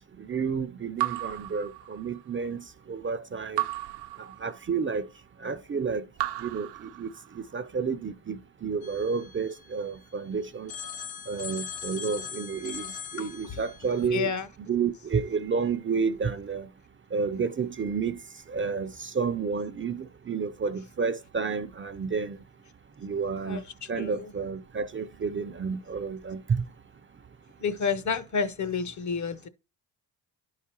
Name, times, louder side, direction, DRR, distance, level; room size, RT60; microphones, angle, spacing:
voice 1, 0.3-2.6 2.9-3.6 4.4-5.1 5.4-6.0 6.4-6.7 7.0-7.1 7.4-10.7 11.3-12.9 13.1-14.3 14.7-16.7 17.1-18.2 18.5-22.4 23.0-23.6 23.9-26.4, right 5 dB, 30° right, 0.5 m, -30 dB
Raindrop / Drip, 1.0-2.4 3.6-4.9 6.1-7.6, right 16 dB, 75° right, 0.8 m, -34 dB
Telephone, 8.8-10.2 10.7-14.1, left 7 dB, 85° left, 1.8 m, -41 dB
voice 2, 14.1-14.5 23.4-23.6 24.0-24.3 27.6-29.5, left 6 dB, 45° left, 0.8 m, -29 dB
11.0 x 4.8 x 2.9 m
cardioid pair, 70°, 42 cm